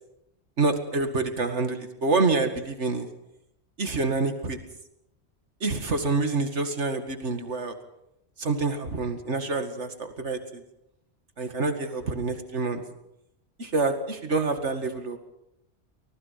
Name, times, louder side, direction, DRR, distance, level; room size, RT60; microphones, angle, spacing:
voice 1, 0.6-3.1 3.8-4.6 5.6-7.7 8.4-10.4 11.4-12.8 13.6-15.2, right 3 dB, 75° right, 7 dB, 2.4 m, -27 dB
24.5 x 19.5 x 5.8 m, 0.85 s
omnidirectional pair, 1.2 m